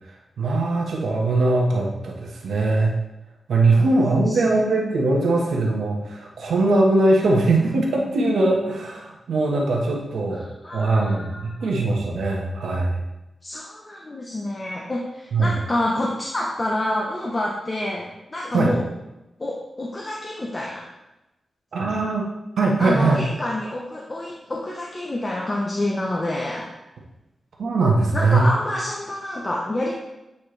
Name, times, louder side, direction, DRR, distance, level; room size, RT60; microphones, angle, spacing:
voice 1, 0.4-3.0 3.5-10.5 10.7-13.0 15.3-15.5 18.5-18.7 21.7-22.3 22.6-23.2 27.6-28.5, right 2 dB, 85° right, -1 dB, 1.3 m, -21 dB
voice 2, 4.1-4.6 7.2-8.3 10.3-11.7 13.4-18.8 19.4-20.8 22.8-26.7 28.1-29.9, left 1 dB, 25° left, -2 dB, 0.7 m, -28 dB
8.3 x 4.4 x 3.3 m, 0.97 s
wide cardioid pair, 155°, 0 cm